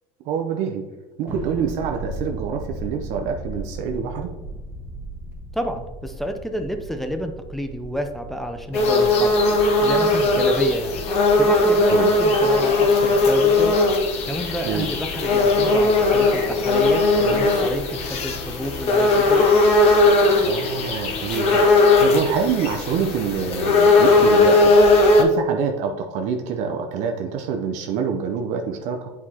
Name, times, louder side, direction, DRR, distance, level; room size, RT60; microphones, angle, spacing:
voice 1, 0.2-0.9 1.2-4.3 11.9-12.1 14.7-14.9 20.4-29.1, right 6 dB, 60° right, 4 dB, 0.6 m, -26 dB
Thunder, 1.3-11.9, right 2 dB, 15° right, 1.4 m, -37 dB
voice 2, 5.5-9.4 9.8-11.0 11.4-13.8 14.2-19.5, equal, ahead, 6 dB, 0.5 m, -29 dB
sound 1, 8.7-25.2, left 2 dB, 45° left, 0.9 m, -18 dB
8.1 x 4.7 x 2.9 m, 1.2 s
cardioid pair, 140°, 14 cm